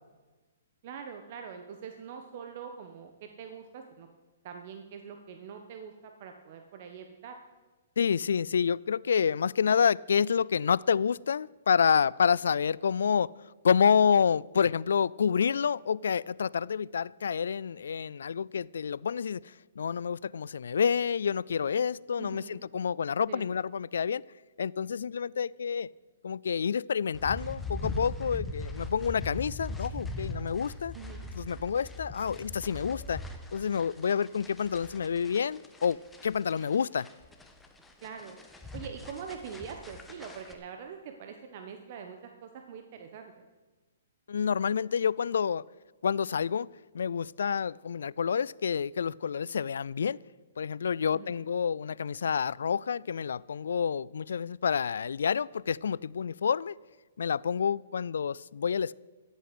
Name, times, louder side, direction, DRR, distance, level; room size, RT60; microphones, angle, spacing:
voice 1, 0.8-4.1 4.4-7.4 22.2-22.6 23.3-23.5 30.9-31.3 38.0-38.4 38.7-43.5 51.1-51.4, right 7 dB, 50° right, 1.2 m, -44 dB
voice 2, 8.0-13.3 13.6-19.4 19.8-24.2 24.6-25.9 26.2-30.9 31.3-33.2 33.5-37.1 44.3-45.6 46.0-46.7 46.9-50.2 50.6-56.7 57.2-58.9, left 7 dB, 75° left, 0.3 m, -28 dB
sound 1, 27.1-40.5, left 2 dB, 5° left, 1.4 m, -41 dB
13.5 x 8.2 x 7.8 m
hypercardioid pair, 135°, 0 cm